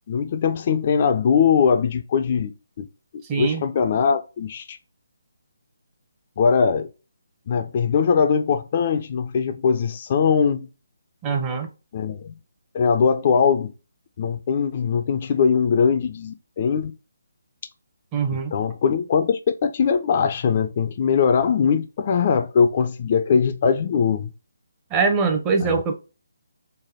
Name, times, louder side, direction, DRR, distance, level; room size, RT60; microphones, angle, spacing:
voice 1, 0.1-2.5 2.8-2.9 3.4-4.8 6.4-6.9 7.5-10.7 11.9-12.3 12.7-13.7 14.2-16.9 18.3-24.3 25.6-25.8, left 6 dB, 40° left, 0.3 m, -21 dB
voice 2, 3.3-3.6 11.2-11.7 18.1-18.5 24.9-25.9, right 5 dB, 20° right, 0.6 m, -22 dB
3.3 x 2.1 x 3.5 m
figure-of-eight pair, 150°, 0 cm